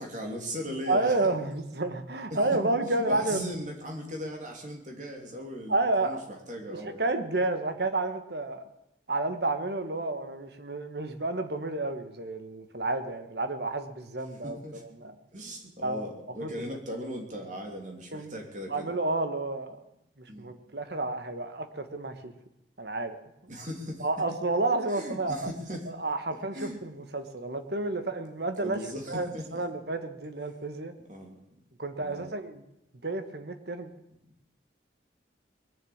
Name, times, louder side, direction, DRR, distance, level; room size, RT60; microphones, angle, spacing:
voice 1, 0.0-1.3 2.3-2.4 3.1-6.2 6.5-7.1 14.4-14.8 15.3-18.9 20.3-20.5 23.5-24.1 24.9-25.8 26.5-26.8 28.6-29.6 31.1-31.4 32.0-32.3 34.2-34.3, equal, 40° right, 1 dB, 3.0 m, -38 dB
voice 2, 0.9-3.4 5.7-6.2 6.8-8.6 9.1-14.6 15.0-15.1 15.8-16.1 16.4-16.5 18.1-18.4 18.7-19.8 20.4-22.3 22.8-23.2 24.0-25.5 25.9-28.8 29.1-30.9 31.8-32.6 33.0-33.9, right 2 dB, 55° right, 9 dB, 1.4 m, -30 dB
21.0 x 7.3 x 8.7 m, 0.84 s
head